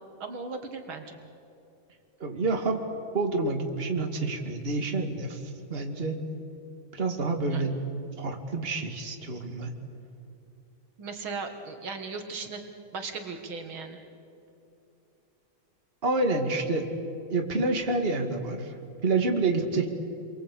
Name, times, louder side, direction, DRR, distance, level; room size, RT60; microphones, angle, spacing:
voice 1, 0.2-1.2 7.5-7.6 11.0-12.6 12.9-14.0, right 4 dB, 75° right, 5 dB, 2.6 m, -37 dB
voice 2, 2.2-2.8 3.1-6.2 6.9-7.8 8.2-9.7 16.0-16.9 17.3-18.7 19.0-19.9, right 3 dB, 30° right, 3 dB, 2.3 m, -28 dB
30.0 x 23.0 x 8.4 m, 2.8 s
omnidirectional pair, 2.3 m